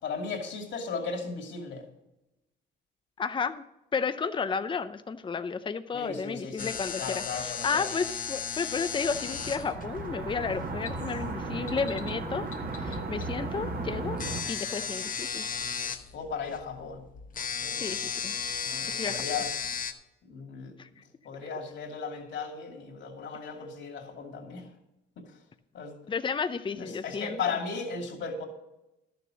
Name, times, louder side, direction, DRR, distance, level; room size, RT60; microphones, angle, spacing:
voice 1, 0.0-1.8 5.9-7.9 10.8-11.1 16.1-17.0 17.5-17.9 18.6-19.6 20.2-20.7 21.2-24.6 25.2-25.3 25.7-25.9 26.7-28.4, left 5 dB, 65° left, 2 dB, 2.7 m, -36 dB
voice 2, 3.2-3.6 3.9-12.5 12.8-14.2 14.5-15.5 17.8-18.3 19.0-19.2 20.8-20.9 26.1-27.6, left 5 dB, 25° left, 10 dB, 0.6 m, -32 dB
sound 1, 6.6-19.9, left 6 dB, 45° left, 1.0 m, -36 dB
sound 2, 8.7-14.4, right 3 dB, 50° right, 2.0 m, -35 dB
12.0 x 6.9 x 6.2 m, 0.92 s
cardioid pair, 90°, 20 cm